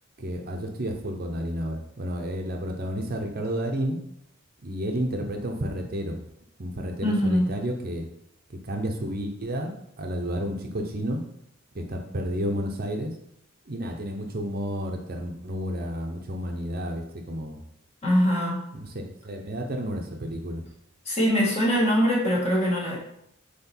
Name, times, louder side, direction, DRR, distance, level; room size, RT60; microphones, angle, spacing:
voice 1, 0.2-4.0 4.6-6.2 6.6-8.1 8.5-11.2 11.7-13.1 13.7-17.6 18.7-20.6, equal, 45° right, 3 dB, 0.8 m, -31 dB
voice 2, 7.0-7.5 18.0-18.6 21.1-23.0, equal, 30° left, -3 dB, 1.9 m, -22 dB
7.9 x 3.1 x 4.5 m, 0.74 s
head